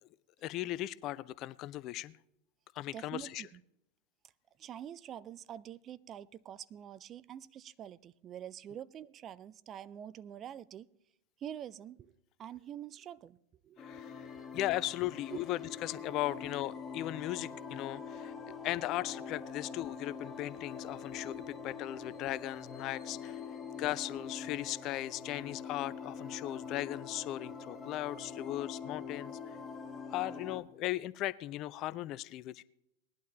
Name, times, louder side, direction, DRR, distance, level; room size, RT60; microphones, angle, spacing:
voice 1, 0.4-2.1 2.8-3.4 13.8-14.3 14.5-18.3 18.6-23.4 23.8-29.4 30.1-32.6, left 15 dB, 35° left, 20 dB, 0.4 m, -37 dB
voice 2, 2.9-3.6 4.6-10.9 11.4-13.4 13.6-13.8 15.3-15.4 18.5-18.6 23.6-23.7, right 10 dB, 30° right, 17 dB, 0.3 m, -46 dB
sound 1, 13.8-30.6, left 6 dB, 20° left, 1.0 m, -44 dB
19.0 x 11.5 x 3.0 m, 0.78 s
figure-of-eight pair, 90°, 0 cm